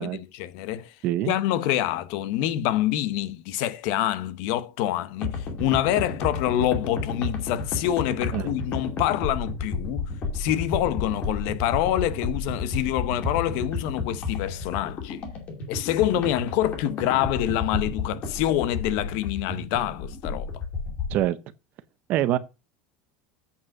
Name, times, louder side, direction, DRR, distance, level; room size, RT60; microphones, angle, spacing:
voice 1, 0.0-1.0 1.3-10.0 10.3-15.2 15.7-20.6, left 12 dB, 55° left, 0.8 m, -26 dB
voice 2, 1.0-1.3 8.3-8.5 21.1-21.4 22.1-22.4, right 13 dB, 40° right, 0.6 m, -24 dB
sound 1, 5.2-21.2, left 4 dB, 30° left, 2.4 m, -32 dB
8.2 x 5.1 x 5.9 m
cardioid pair, 175°, 4 cm